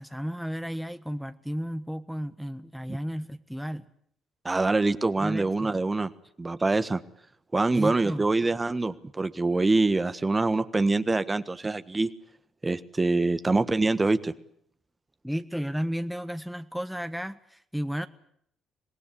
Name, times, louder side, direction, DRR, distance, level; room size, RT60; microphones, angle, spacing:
voice 1, 0.0-3.9 5.2-5.7 7.7-8.2 15.2-18.1, equal, ahead, 11 dB, 1.3 m, -33 dB
voice 2, 4.4-6.1 6.4-7.0 7.5-12.1 12.6-14.3, right 3 dB, 25° right, 12 dB, 1.4 m, -25 dB
25.5 x 19.5 x 8.6 m, 0.68 s
hypercardioid pair, 50°, 0 cm